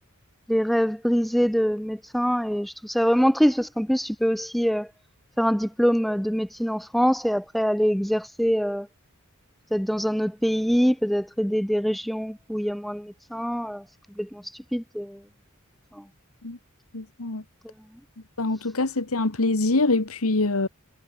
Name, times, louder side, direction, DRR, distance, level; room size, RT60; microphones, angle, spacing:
voice 1, 0.5-4.9 5.4-8.9 9.7-13.8 14.2-15.2 15.9-16.0 17.6-17.7, equal, ahead, 0.3 m, -24 dB
voice 2, 16.9-17.4 18.4-20.7, left 2 dB, 85° left, 1.6 m, -24 dB
head